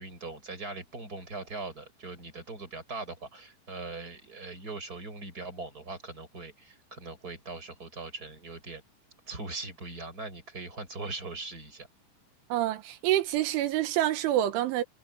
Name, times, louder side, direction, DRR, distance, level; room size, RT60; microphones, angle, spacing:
voice 1, 0.0-8.8 9.3-11.9, right 3 dB, 20° right, 7.5 m, -40 dB
voice 2, 12.5-14.8, right 13 dB, 85° right, 3.9 m, -27 dB
omnidirectional pair, 5.3 m